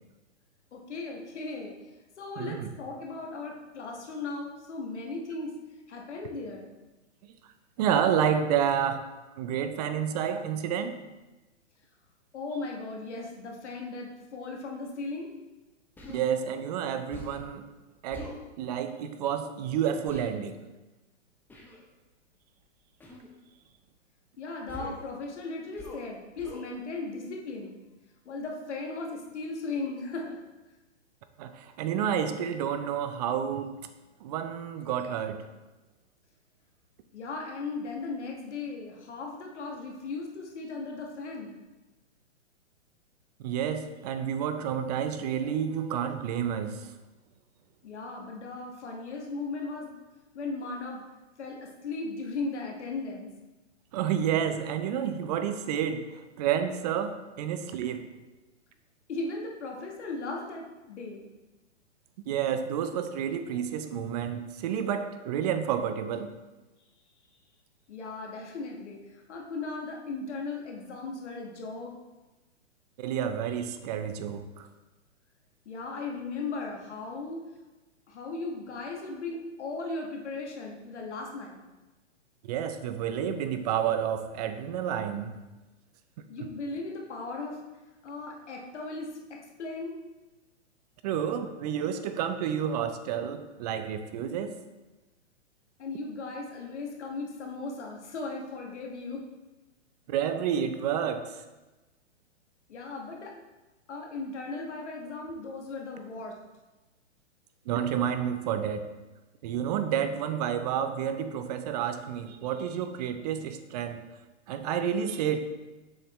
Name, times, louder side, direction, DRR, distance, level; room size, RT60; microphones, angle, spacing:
voice 1, 0.7-1.7 2.2-5.5 5.9-6.7 12.3-15.3 24.4-27.8 28.2-30.4 37.1-41.5 47.8-49.9 50.3-51.0 51.4-53.3 59.1-61.2 67.9-72.0 75.6-77.4 78.1-81.6 86.3-87.6 88.0-90.0 95.8-99.2 102.7-103.3 103.9-106.4, left 3 dB, 70° left, 0 dB, 1.4 m, -37 dB
voice 2, 2.4-2.7 7.8-9.1 9.4-11.0 16.1-17.7 18.0-20.6 31.4-33.8 34.2-35.5 43.4-46.9 53.9-58.1 62.3-66.3 73.0-74.7 82.4-85.4 91.0-94.6 100.1-101.4 107.7-108.8 109.4-114.0 114.5-115.4, right 8 dB, 35° right, 9 dB, 0.5 m, -30 dB
Human voice, 16.0-16.2 17.1-17.5 18.1-18.4 20.1-20.3 21.5-21.8 23.0-23.3 24.7-25.1 25.8-26.1 26.4-26.7, left 1 dB, 5° left, 0.6 m, -43 dB
7.1 x 5.3 x 3.1 m, 1.1 s
hypercardioid pair, 130°, 36 cm